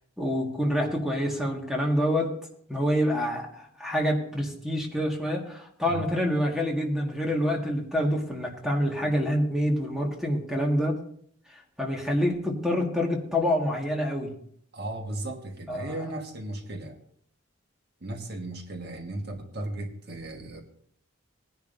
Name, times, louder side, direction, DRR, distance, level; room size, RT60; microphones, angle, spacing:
voice 1, 0.2-2.3 2.7-11.0 11.8-14.3 15.7-15.9, equal, ahead, 0 dB, 1.8 m, -27 dB
voice 2, 14.7-17.0 18.0-20.6, right 1 dB, 50° right, 4 dB, 1.5 m, -36 dB
19.0 x 10.5 x 2.7 m, 0.63 s
head